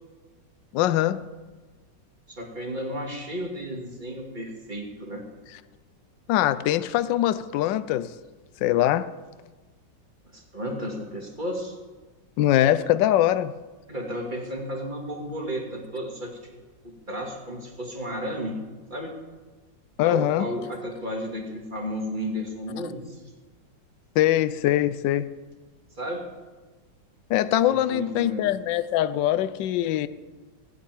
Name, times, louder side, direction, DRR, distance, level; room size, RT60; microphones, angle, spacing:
voice 1, 0.7-1.2 6.3-8.1 8.6-9.1 12.4-13.6 20.0-20.5 24.2-25.3 27.3-30.1, left 13 dB, 80° left, 15 dB, 1.3 m, -22 dB
voice 2, 2.3-5.2 10.3-11.8 13.9-16.5 16.8-18.6 18.9-19.1 20.0-23.2 26.0-26.3 27.7-28.5, equal, 25° right, 1 dB, 2.4 m, -33 dB
16.5 x 7.9 x 9.1 m, 1.3 s
omnidirectional pair, 2.0 m